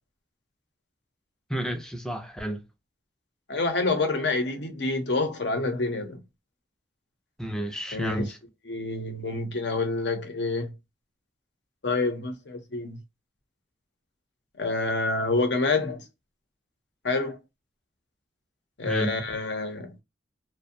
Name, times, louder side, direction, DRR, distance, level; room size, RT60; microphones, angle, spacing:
voice 1, 1.5-2.6 7.4-8.4 18.8-19.1, equal, 5° left, 0.4 m, -30 dB
voice 2, 3.5-6.2 7.9-8.3 8.7-10.7 11.8-13.0 14.6-16.0 17.0-17.4 18.8-20.0, left 3 dB, 65° left, 0.7 m, -27 dB
2.5 x 2.1 x 2.6 m
head